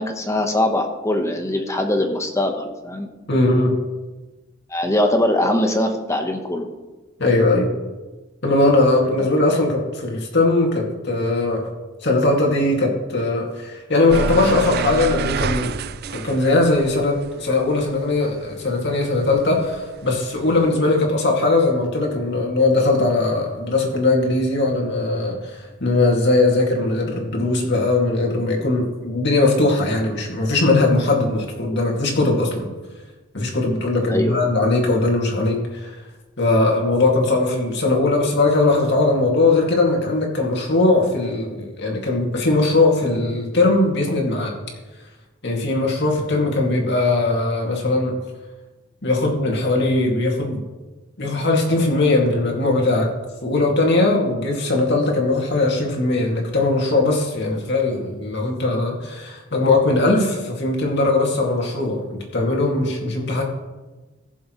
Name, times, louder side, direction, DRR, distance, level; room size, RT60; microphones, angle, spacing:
voice 1, 0.0-3.1 4.7-6.7 9.2-9.3 34.1-34.3, left 1 dB, 15° left, 4 dB, 1.1 m, -22 dB
voice 2, 3.3-3.7 7.2-7.7 8.4-11.7 12.0-15.7 16.1-32.7 33.3-35.9 36.4-44.5 45.4-48.2 49.0-50.6 51.2-53.1 53.4-63.4, left 2 dB, 60° left, 0 dB, 2.3 m, -20 dB
sound 1, 14.1-18.8 19.1-20.7, right 6 dB, 50° right, 0.4 m, -28 dB
19.5 x 7.2 x 3.2 m, 1.2 s
head